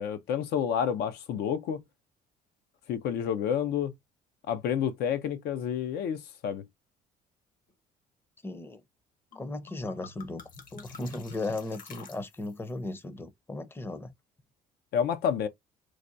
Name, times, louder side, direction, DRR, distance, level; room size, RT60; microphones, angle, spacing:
voice 1, 0.0-1.8 2.9-3.9 4.5-6.6 14.9-15.5, left 8 dB, 75° left, 0.5 m, -29 dB
voice 2, 8.4-8.8 9.3-10.4 10.7-14.1, left 2 dB, 15° left, 0.6 m, -36 dB
sound 1, 9.3-9.4 9.7-12.7, left 5 dB, 55° left, 1.0 m, -48 dB
4.6 x 2.2 x 2.5 m
cardioid pair, 110°, 17 cm